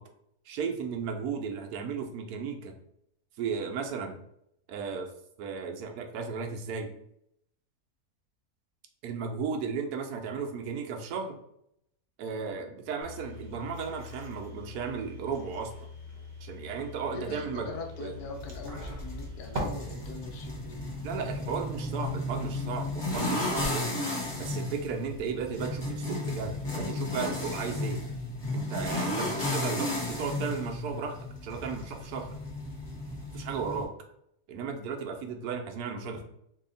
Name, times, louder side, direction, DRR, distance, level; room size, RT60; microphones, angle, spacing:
voice 1, 0.5-2.7 3.4-4.2 4.7-5.1 5.4-6.9 9.0-11.4 12.2-15.7 16.4-17.7 18.0-18.1 21.0-23.9 24.4-28.0 28.5-31.2 31.4-32.3 33.3-33.9 34.5-36.2, right 5 dB, 90° right, 4 dB, 1.1 m, -35 dB
sound 1, 13.0-19.6, left 2 dB, 50° right, 0.9 m, -43 dB
voice 2, 17.1-20.8 21.5-21.6, left 3 dB, 90° left, 2 dB, 1.2 m, -42 dB
sound 2, 18.3-33.8, left 1 dB, 45° left, 0.3 m, -34 dB
2.7 x 2.7 x 3.8 m, 0.75 s
omnidirectional pair, 1.6 m